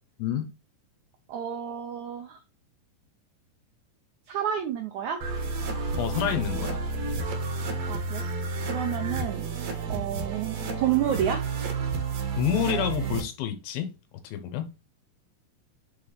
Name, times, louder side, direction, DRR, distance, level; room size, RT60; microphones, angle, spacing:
voice 1, 1.3-2.4 4.3-5.2 7.9-8.3 8.7-9.4 9.9-11.4, right 9 dB, 85° right, 1.7 m, -29 dB
sound 1, 5.2-13.2, right 4 dB, 60° right, 1.9 m, -31 dB
voice 2, 6.0-6.8 12.4-13.9 14.2-14.7, left 9 dB, 80° left, 2.6 m, -28 dB
7.3 x 4.2 x 3.3 m
omnidirectional pair, 4.2 m